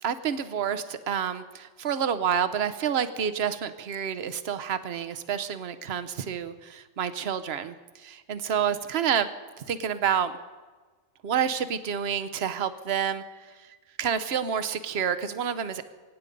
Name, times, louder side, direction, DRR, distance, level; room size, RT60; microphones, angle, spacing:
voice 1, 0.0-9.3 9.7-10.3 11.2-13.2 14.0-15.8, right 8 dB, 60° right, 11 dB, 1.0 m, -28 dB
24.0 x 9.8 x 5.2 m, 1.4 s
omnidirectional pair, 1.2 m